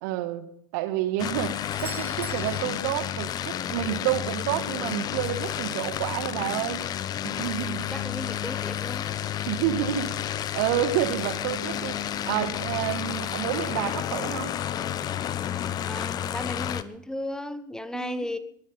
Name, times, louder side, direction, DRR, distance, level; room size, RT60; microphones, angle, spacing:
voice 1, 0.0-6.9 7.2-7.9 9.4-10.1 10.5-14.6 17.9-18.3, right 11 dB, 60° right, 11 dB, 1.6 m, -29 dB
sound 1, 1.2-16.8, left 10 dB, 40° left, 1.0 m, -31 dB
Doorbell, 1.7-3.6 7.6-7.7, right 5 dB, 20° right, 2.1 m, -44 dB
voice 2, 7.6-9.0 15.9-18.4, left 1 dB, 5° left, 13 dB, 1.1 m, -35 dB
20.0 x 11.5 x 5.3 m, 0.67 s
figure-of-eight pair, 75°, 11 cm